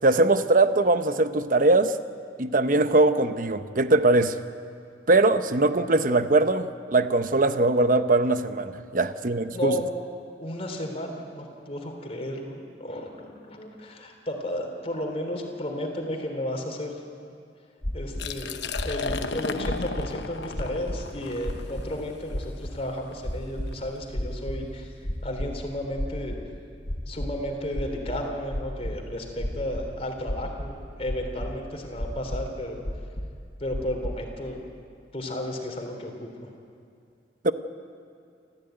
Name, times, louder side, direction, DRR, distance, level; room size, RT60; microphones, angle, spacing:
voice 1, 0.0-2.0 2.4-4.4 5.1-9.7 37.4-37.5, right 2 dB, 50° right, 10 dB, 0.9 m, -21 dB
voice 2, 9.5-9.9 10.4-16.9 17.9-18.6 18.8-24.9 25.2-26.4 27.1-32.8 33.6-34.6 35.1-36.3, left 1 dB, 35° left, 2 dB, 3.4 m, -33 dB
sound 1, 17.8-18.2 18.7-19.2 19.6-20.2 20.5-21.0 21.4-21.9 22.3-22.7 23.2-23.7 24.1-24.7 25.0-25.5 26.0-26.5 26.8-27.3 27.7-28.9 29.4-29.8 30.3-30.8 31.1-31.5 32.0-32.4 32.8-33.4 33.7-34.1, equal, 55° left, 3.3 m, -31 dB
Liquid, 18.1-23.8, left 4 dB, 75° left, 1.1 m, -35 dB
28.0 x 14.5 x 9.2 m, 2.4 s
head